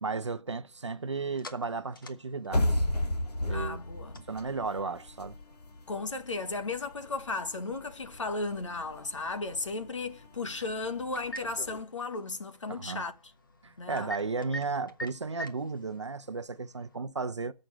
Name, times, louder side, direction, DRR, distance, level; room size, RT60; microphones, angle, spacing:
voice 1, 0.0-2.8 3.4-3.8 4.2-5.4 12.7-13.0 13.6-17.5, right 4 dB, 45° right, 0.8 m, -34 dB
sound 1, 0.6-17.0, right 1 dB, 35° left, 1.2 m, -49 dB
sound 2, 2.5-11.8, left 1 dB, 80° left, 2.5 m, -35 dB
voice 2, 3.5-4.2 5.9-13.1 13.8-14.1, left 3 dB, 50° left, 1.5 m, -35 dB
12.5 x 6.5 x 7.2 m
hypercardioid pair, 175°, 20 cm